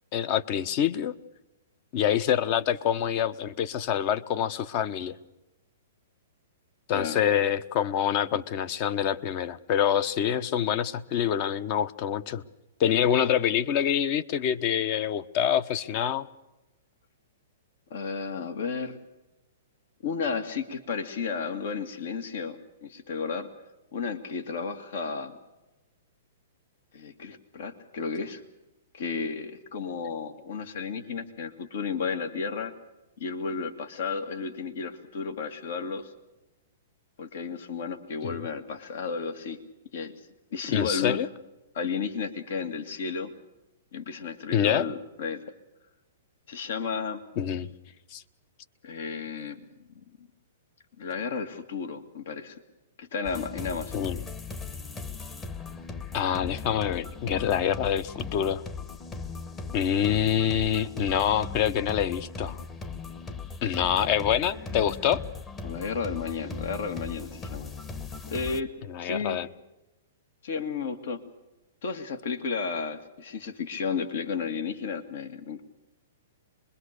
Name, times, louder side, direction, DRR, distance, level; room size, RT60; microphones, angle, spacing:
voice 1, 0.1-1.2 1.9-5.2 6.9-12.4 12.8-16.3 38.2-38.3 40.7-41.3 44.5-44.9 47.4-47.7 48.1-48.2 53.9-54.2 56.1-58.6 59.7-62.6 63.6-65.2 68.9-69.5, left 9 dB, 40° left, 14 dB, 1.0 m, -26 dB
voice 2, 17.9-19.0 20.0-23.5 23.9-25.3 26.9-28.4 28.9-32.7 33.2-36.1 37.2-39.6 39.9-40.1 40.5-41.2 41.7-43.3 43.9-45.4 46.5-47.2 48.8-49.6 50.0-50.1 51.0-52.6 53.0-54.1 65.6-67.7 68.3-68.7 69.0-69.4 70.4-71.2 71.8-75.6, left 5 dB, 65° left, 9 dB, 2.1 m, -33 dB
sound 1, 53.2-68.6, left 4 dB, 20° left, 1.2 m, -38 dB
25.0 x 22.0 x 6.7 m, 0.99 s
hypercardioid pair, 135°, 0 cm